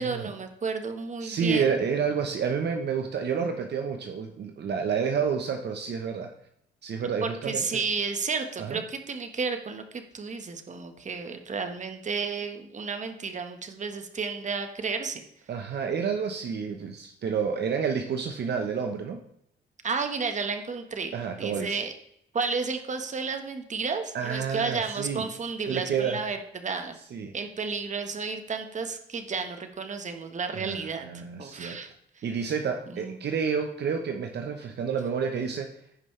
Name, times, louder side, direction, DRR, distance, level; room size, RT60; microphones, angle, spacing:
voice 1, 0.0-1.8 7.2-15.2 19.8-21.9 22.3-27.0 27.3-31.1 31.4-32.2 32.9-33.2, right 5 dB, 35° right, 7 dB, 1.4 m, -32 dB
voice 2, 1.2-6.3 6.8-7.8 8.6-8.8 15.5-19.2 21.1-21.8 24.1-25.2 25.6-26.2 27.1-27.3 30.5-31.8 32.2-35.7, right 6 dB, 60° right, 4 dB, 1.1 m, -29 dB
15.5 x 5.4 x 3.3 m, 0.72 s
cardioid pair, 90°, 20 cm